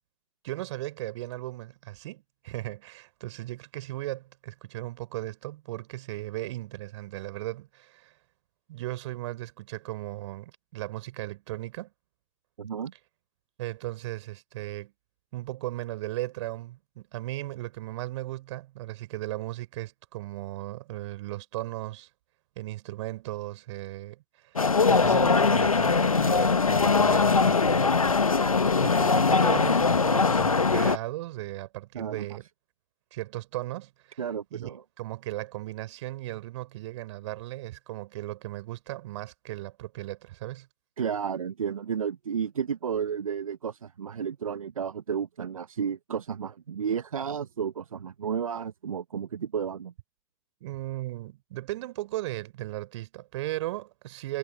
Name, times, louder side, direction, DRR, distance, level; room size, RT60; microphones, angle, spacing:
voice 1, 0.4-8.2 8.7-11.9 13.6-14.9 15.3-22.1 22.6-28.2 28.8-32.5 33.1-34.2 34.5-34.7 35.0-40.7 50.6-54.4, right 16 dB, 60° right, 4.4 m, -36 dB
voice 2, 12.6-12.9 31.9-32.2 34.2-34.8 41.0-49.9, right 7 dB, 80° right, 1.2 m, -32 dB
sound 1, 24.6-31.0, left 4 dB, 90° left, 1.2 m, -21 dB
figure-of-eight pair, 90°, 17 cm